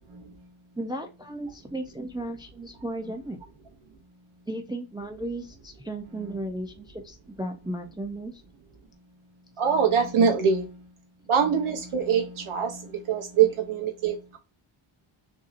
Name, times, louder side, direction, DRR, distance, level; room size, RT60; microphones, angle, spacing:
voice 1, 0.8-3.4 4.5-8.4, right 1 dB, 10° right, 4 dB, 0.4 m, -35 dB
voice 2, 9.6-10.8 11.3-14.4, right 7 dB, 75° right, 3 dB, 1.0 m, -24 dB
6.3 x 2.7 x 2.5 m, 0.30 s
wide cardioid pair, 180°, 50 cm